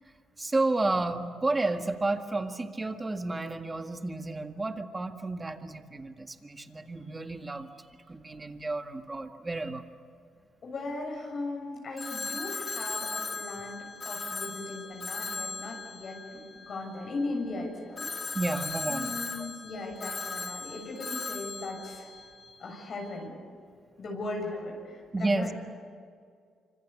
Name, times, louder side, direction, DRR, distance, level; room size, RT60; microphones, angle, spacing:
voice 1, 0.4-7.7 8.1-9.8 18.3-19.5 25.1-25.5, right 2 dB, 20° right, 6 dB, 1.9 m, -31 dB
voice 2, 10.6-18.4 18.9-22.1 22.6-23.3 24.0-25.5, left 2 dB, 50° left, 1 dB, 7.1 m, -38 dB
Telephone, 12.0-17.2 18.0-22.8, left 4 dB, 35° left, 2.3 m, -38 dB
26.0 x 25.5 x 8.4 m, 2.2 s
cardioid pair, 90°, 0 cm